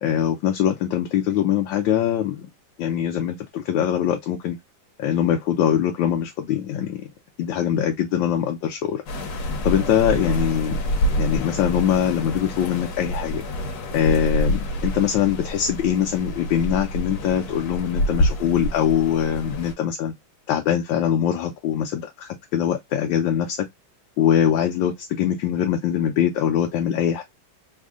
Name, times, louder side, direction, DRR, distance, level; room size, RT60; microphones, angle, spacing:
voice 1, 0.0-2.5 2.8-4.6 5.0-7.1 7.4-9.0 9.6-10.8 11.2-13.4 13.9-20.1 20.5-23.6 24.2-27.2, left 9 dB, 80° left, 1.4 m, -22 dB
sound 1, 9.1-19.7, equal, 65° left, 1.2 m, -27 dB
3.6 x 2.1 x 3.5 m
omnidirectional pair, 2.1 m